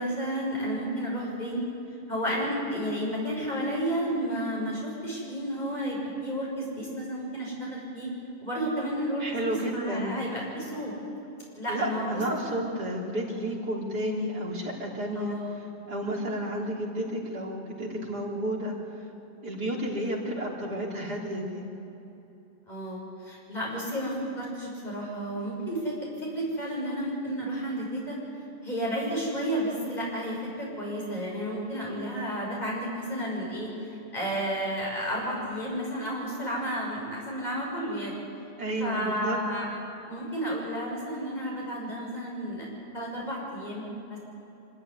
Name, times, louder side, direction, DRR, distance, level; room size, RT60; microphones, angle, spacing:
voice 1, 0.0-1.6 2.1-8.1 8.4-10.9 11.6-12.2 12.5-12.7 15.1-15.6 22.7-28.2 28.6-38.2 38.8-39.7 40.1-42.7 42.9-44.2, equal, 25° left, -4 dB, 6.4 m, -32 dB
voice 2, 9.2-10.1 11.7-15.4 15.9-18.8 19.4-21.6 38.6-39.4, right 1 dB, 75° right, -3 dB, 4.2 m, -31 dB
24.5 x 14.5 x 9.7 m, 3.0 s
omnidirectional pair, 1.8 m